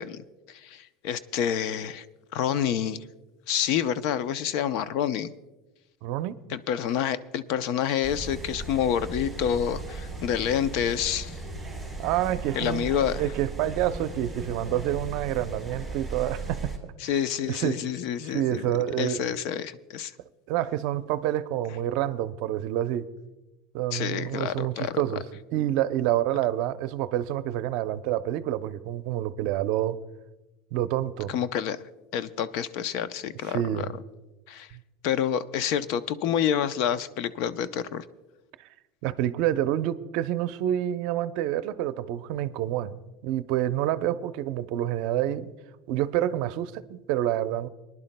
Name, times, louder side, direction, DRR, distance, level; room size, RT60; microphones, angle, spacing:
voice 1, 0.0-2.0 2.3-3.0 3.5-5.3 6.5-11.4 12.6-13.2 17.0-18.7 19.0-20.1 23.9-24.9 31.3-31.8 32.1-33.9 34.5-34.7 35.0-38.0, left 9 dB, 60° left, 0.5 m, -28 dB
voice 2, 6.0-6.4 12.0-12.9 13.2-16.7 17.0-17.1 17.4-17.8 18.2-19.3 20.5-23.1 23.7-25.2 25.5-30.0 30.7-31.3 33.5-33.9 34.7-34.8 38.6-38.7 39.0-42.9 43.2-45.5 45.9-47.7, right 12 dB, 60° right, 0.5 m, -28 dB
sound 1, 8.0-16.8, right 3 dB, 10° left, 3.9 m, -37 dB
25.0 x 11.0 x 2.2 m
supercardioid pair, 130°, 0 cm